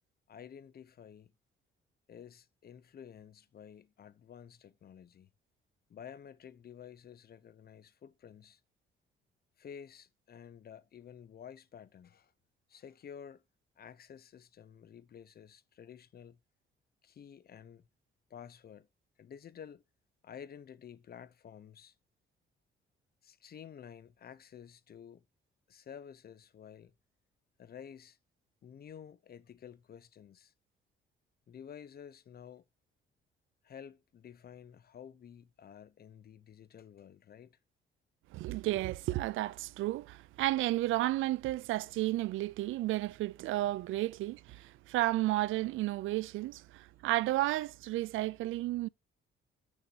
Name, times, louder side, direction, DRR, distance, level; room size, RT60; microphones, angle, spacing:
voice 1, 0.3-1.3 2.1-5.3 5.9-8.6 9.6-12.3 12.7-13.4 13.8-16.4 17.0-17.8 18.3-18.9 19.2-19.8 20.2-21.9 23.2-25.2 25.7-26.9 27.6-28.2 28.6-30.5 31.5-32.6 33.6-37.6, left 8 dB, 50° left, 0.9 m, -51 dB
voice 2, 38.3-48.9, right 17 dB, 85° right, 0.5 m, -32 dB
14.0 x 6.4 x 2.8 m
cardioid pair, 90°, 20 cm